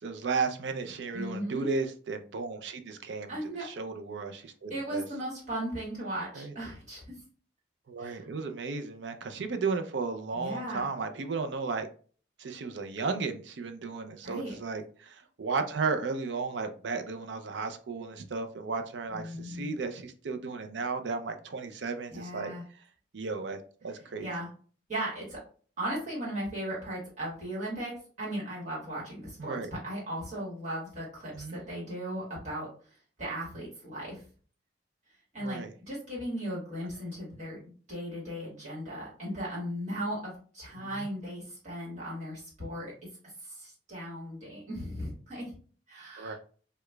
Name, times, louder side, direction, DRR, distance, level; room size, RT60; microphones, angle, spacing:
voice 1, 0.0-5.0 6.4-6.5 7.9-11.9 12.4-22.5 23.1-24.3 29.4-29.7 31.3-31.6 35.4-35.7 36.8-36.9 40.8-41.1 46.2-46.3, right 4 dB, 75° right, 0.5 m, -34 dB
voice 2, 1.1-1.7 3.3-3.7 4.7-7.2 8.0-8.3 10.3-10.9 14.2-14.5 19.1-19.7 22.1-22.6 24.2-24.5 24.9-25.4 25.8-27.9 28.2-29.6 29.8-32.7 33.2-34.2 35.3-42.9 43.4-45.5 45.9-46.3, right 1 dB, 45° right, 1.4 m, -37 dB
4.8 x 2.2 x 2.2 m
head